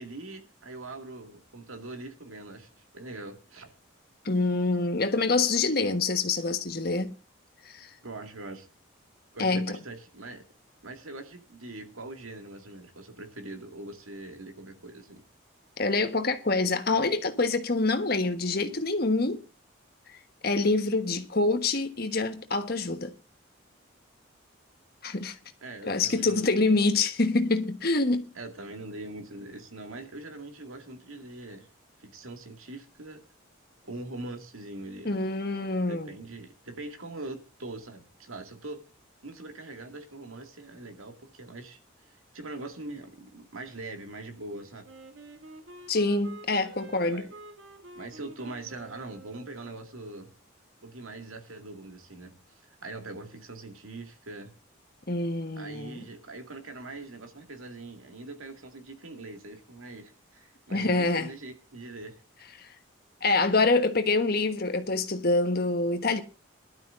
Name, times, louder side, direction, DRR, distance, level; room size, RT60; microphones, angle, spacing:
voice 1, 0.0-3.7 8.0-8.7 9.3-10.4 10.8-15.2 25.6-26.7 28.3-31.7 32.0-33.2 33.8-35.1 35.9-38.9 39.2-41.8 42.1-44.9 46.8-47.3 47.9-50.3 50.8-54.5 55.6-62.2, right 2 dB, 85° right, 2.2 m, -42 dB
voice 2, 4.2-7.1 7.6-7.9 9.4-9.8 15.8-19.4 20.4-23.1 25.0-25.4 25.8-28.3 35.0-36.1 45.9-47.3 55.1-56.0 60.7-61.3 62.6-62.7 63.2-66.2, left 3 dB, 50° left, 1.3 m, -26 dB
Wind instrument woodwind instrument, 44.8-49.9, right 2 dB, 70° right, 2.5 m, -49 dB
20.5 x 12.0 x 2.6 m
head